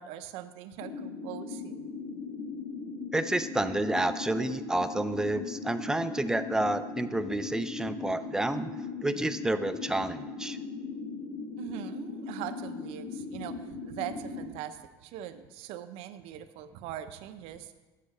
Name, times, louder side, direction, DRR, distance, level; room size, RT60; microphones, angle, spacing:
voice 1, 0.0-2.0 11.6-17.8, right 11 dB, 65° right, 10 dB, 0.6 m, -41 dB
sound 1, 0.8-14.5, left 4 dB, 65° left, 1.7 m, -39 dB
voice 2, 3.1-8.8 9.0-10.6, right 1 dB, 5° right, 10 dB, 0.3 m, -30 dB
8.4 x 4.8 x 6.5 m, 1.2 s
cardioid pair, 150°, 11 cm